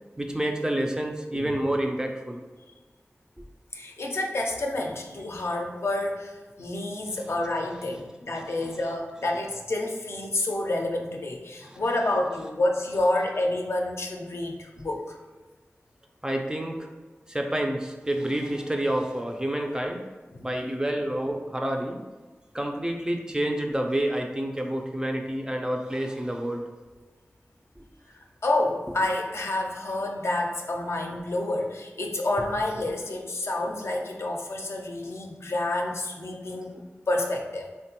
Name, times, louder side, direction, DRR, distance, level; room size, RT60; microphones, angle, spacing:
voice 1, 0.2-2.4 3.4-3.5 7.1-7.2 8.4-8.6 11.6-11.8 16.2-16.9 17.3-20.0 20.4-22.0 22.5-26.6 27.8-27.9 36.7-36.8, right 1 dB, 15° right, 2 dB, 0.4 m, -29 dB
voice 2, 1.3-1.7 3.7-15.2 28.4-36.7 37.1-37.7, left 2 dB, 65° left, 1 dB, 0.4 m, -29 dB
3.4 x 2.2 x 2.8 m, 1.3 s
wide cardioid pair, 65°, 5 cm